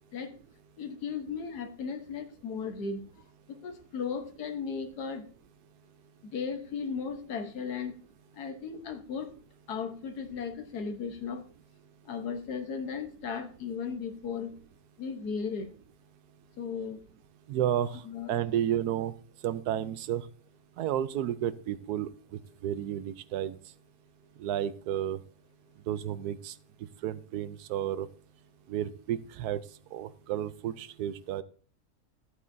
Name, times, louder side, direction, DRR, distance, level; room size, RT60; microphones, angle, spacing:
voice 1, 0.8-3.1 3.5-5.3 6.2-8.0 8.3-9.3 9.7-11.4 12.0-14.5 15.0-15.7 16.6-17.0 18.0-18.3, left 6 dB, 85° left, 7 dB, 1.6 m, -36 dB
voice 2, 17.5-18.0 18.3-19.1 19.4-20.3 20.8-22.1 22.6-23.6 24.4-25.2 25.9-26.5 27.0-28.1 28.7-29.6 29.9-31.4, right 11 dB, 80° right, 15 dB, 1.1 m, -31 dB
14.0 x 8.4 x 2.6 m, 0.41 s
omnidirectional pair, 1.6 m